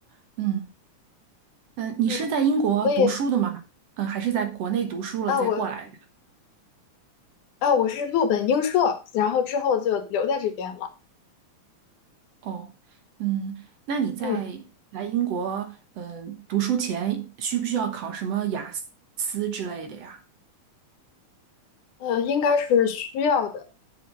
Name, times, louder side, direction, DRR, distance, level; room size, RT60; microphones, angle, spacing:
voice 1, 0.4-0.7 1.8-3.6 4.0-5.8 12.4-12.7 13.2-14.6 14.9-18.8 19.2-20.2, right 8 dB, 60° right, 2.1 m, -27 dB
voice 2, 5.3-5.7 7.6-10.9 14.2-14.4 22.0-23.7, left 7 dB, 80° left, 2.7 m, -23 dB
7.7 x 6.7 x 5.0 m
omnidirectional pair, 3.5 m